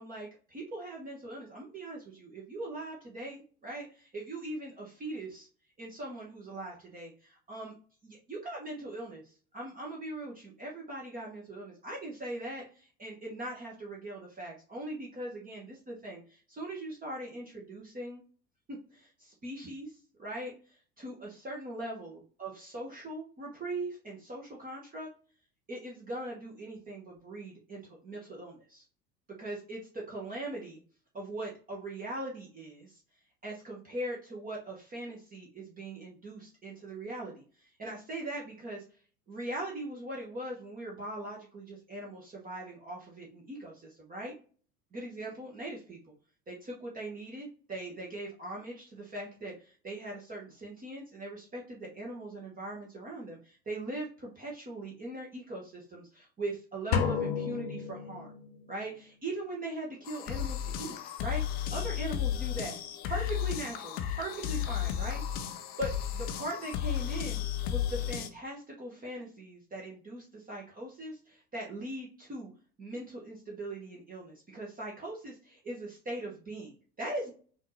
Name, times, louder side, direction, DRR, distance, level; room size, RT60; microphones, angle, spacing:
voice 1, 0.0-5.5 5.8-7.7 8.0-18.2 18.9-25.1 25.7-28.8 29.4-30.8 31.1-33.0 33.4-38.8 39.3-44.3 44.9-46.0 46.5-58.3 58.7-62.8 63.1-65.5 65.8-67.4 67.7-72.5 72.8-77.3, right 1 dB, 20° right, -2 dB, 1.0 m, -40 dB
sound 1, 56.9-58.7, left 7 dB, 55° left, 0.8 m, -31 dB
sound 2, 60.1-68.3, left 10 dB, 25° left, 0.3 m, -34 dB
5.5 x 2.6 x 3.1 m, 0.40 s
figure-of-eight pair, 75°, 47 cm